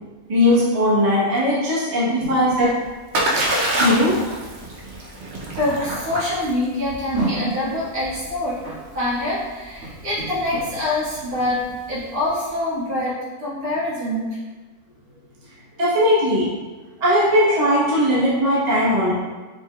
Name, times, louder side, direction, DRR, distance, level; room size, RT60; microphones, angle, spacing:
voice 1, 0.3-2.7 3.8-4.2 15.8-16.5 17.0-19.1, left 1 dB, 30° right, -8 dB, 1.1 m, -18 dB
Splash splatter, 2.4-12.3, right 1 dB, 55° right, 0.9 m, -28 dB
voice 2, 5.4-14.4, left 1 dB, 75° right, -9 dB, 2.1 m, -25 dB
5.4 x 3.4 x 2.3 m, 1.3 s
omnidirectional pair, 1.6 m